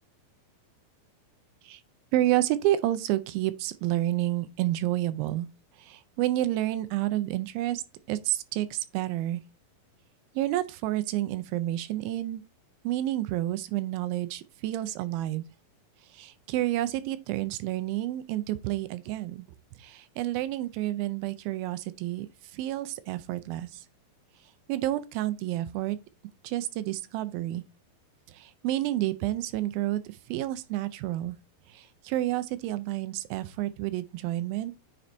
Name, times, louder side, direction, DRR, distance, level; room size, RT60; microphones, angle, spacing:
voice 1, 2.1-5.5 5.8-7.8 8.1-9.4 10.3-12.4 12.8-15.4 16.1-19.5 19.8-22.3 22.5-23.8 24.7-26.0 26.4-27.6 28.3-31.4 31.7-34.7, right 14 dB, 90° right, 2.4 m, -29 dB
9.3 x 4.3 x 2.6 m
omnidirectional pair, 4.2 m